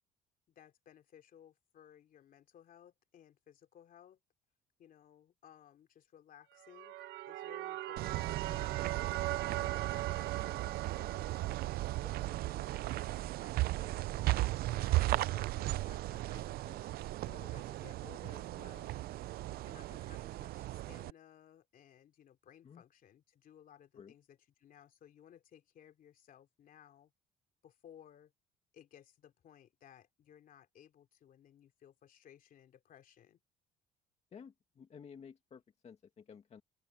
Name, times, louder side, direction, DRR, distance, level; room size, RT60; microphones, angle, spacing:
voice 1, 0.5-4.2 4.8-9.0 9.6-11.3 12.0-16.9 17.2-19.0 19.6-27.1 27.6-28.3 28.7-33.4, left 10 dB, 55° left, 3.0 m, -60 dB
sound 1, 6.6-13.5, right 15 dB, 85° right, 1.0 m, -41 dB
sound 2, 8.0-21.1, right 17 dB, 65° right, 0.4 m, -36 dB
voice 2, 34.3-36.6, left 7 dB, 40° left, 2.1 m, -54 dB
open air
cardioid pair, 110°, 17 cm